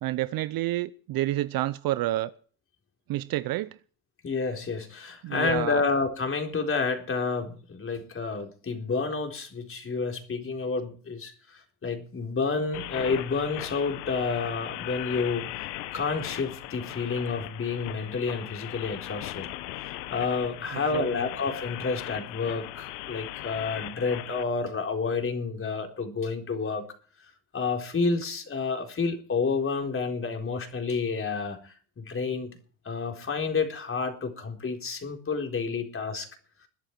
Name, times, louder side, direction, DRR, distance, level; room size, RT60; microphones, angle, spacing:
voice 1, 0.0-2.3 3.1-3.8 5.2-5.9 20.7-21.3, right 15 dB, 45° right, 16 dB, 0.8 m, -29 dB
voice 2, 4.2-15.7 15.9-19.5 19.8-26.8 27.5-32.5 32.8-36.3, left 4 dB, 25° left, 4 dB, 4.0 m, -30 dB
sound 1, 12.7-24.4, left 16 dB, 70° left, 1.5 m, -38 dB
21.0 x 11.5 x 4.6 m, 0.42 s
hypercardioid pair, 90°, 49 cm